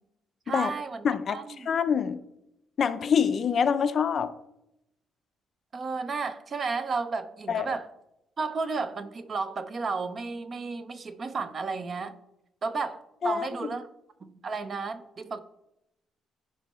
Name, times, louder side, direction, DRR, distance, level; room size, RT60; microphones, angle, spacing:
voice 1, 0.5-1.7 5.7-7.9 8.4-12.2 12.6-13.9 14.2-15.4, right 4 dB, 30° right, 0.6 m, -33 dB
voice 2, 1.0-1.4 1.7-2.2 2.8-4.3 7.5-7.7 13.2-13.5, left 7 dB, 40° left, 0.5 m, -25 dB
15.0 x 5.4 x 3.1 m
cardioid pair, 165°, 0 cm